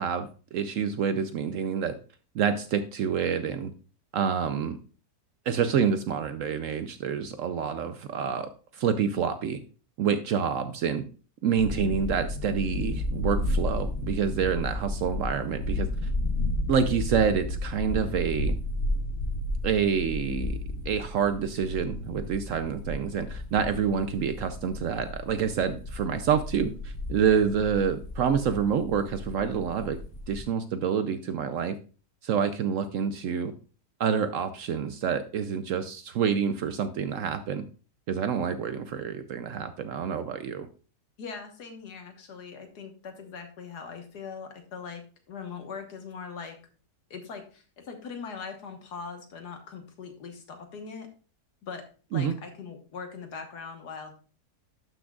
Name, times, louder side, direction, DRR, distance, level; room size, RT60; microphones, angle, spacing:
voice 1, 0.0-1.9 2.3-3.7 4.1-4.8 5.5-9.6 10.0-11.0 11.4-15.9 16.7-18.6 19.6-20.6 20.9-30.0 30.3-31.8 32.2-33.5 34.0-37.6 38.1-40.7 52.1-52.3, right 7 dB, 70° right, 10 dB, 0.7 m, -27 dB
sound 1, 11.6-30.4, left 1 dB, 55° left, 1.1 m, -33 dB
voice 2, 41.2-46.6 47.1-51.1 51.6-51.8 52.1-54.1, left 5 dB, 70° left, 5 dB, 1.8 m, -41 dB
12.0 x 6.1 x 2.3 m, 0.37 s
omnidirectional pair, 1.8 m